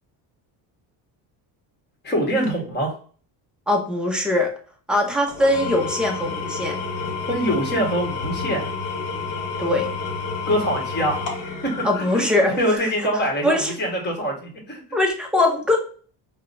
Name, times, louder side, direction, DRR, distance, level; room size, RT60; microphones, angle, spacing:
voice 1, 2.0-2.9 7.3-8.7 10.5-11.2 12.0-12.2 12.6-14.8, equal, 20° left, -1 dB, 1.2 m, -24 dB
voice 2, 3.7-4.5 4.9-6.8 9.6-9.9 11.8-12.8 13.4-13.7 14.9-15.8, left 1 dB, ahead, 1 dB, 0.5 m, -21 dB
Engine / Tools, 5.3-12.7, left 4 dB, 40° left, 1.1 m, -30 dB
4.8 x 2.1 x 2.5 m, 0.43 s
cardioid pair, 130°, 47 cm